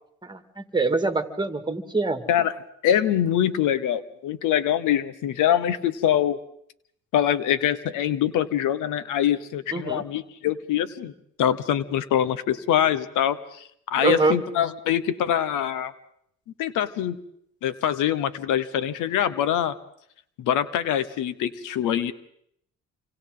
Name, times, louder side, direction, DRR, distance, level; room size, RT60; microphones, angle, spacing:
voice 1, 0.2-2.3 9.7-10.0 14.0-14.4, right 3 dB, 15° right, 8 dB, 2.0 m, -25 dB
voice 2, 2.8-6.4 7.1-11.1 11.4-13.6 13.9-15.9 16.6-17.2 17.6-19.7 20.4-22.1, left 10 dB, 90° left, 14 dB, 1.1 m, -24 dB
28.0 x 25.0 x 3.9 m, 0.70 s
cardioid pair, 90°, 30 cm